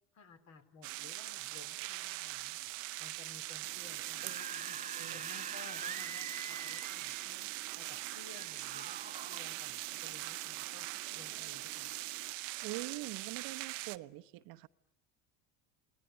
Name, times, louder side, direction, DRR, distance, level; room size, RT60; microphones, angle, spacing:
voice 1, 0.1-2.7 3.0-4.8 5.1-7.5 7.8-10.9 11.1-11.9, left 4 dB, 45° left, 4.4 m, -57 dB
sound 1, 0.8-14.0, right 19 dB, 90° right, 1.0 m, -42 dB
sound 2, 3.6-12.3, right 12 dB, 45° right, 1.2 m, -49 dB
Screaming / Screech, 4.0-7.4 8.3-9.4, right 5 dB, 20° right, 1.1 m, -45 dB
voice 2, 12.6-14.7, right 18 dB, 65° right, 1.1 m, -44 dB
29.0 x 20.0 x 9.9 m
supercardioid pair, 95°, 37 cm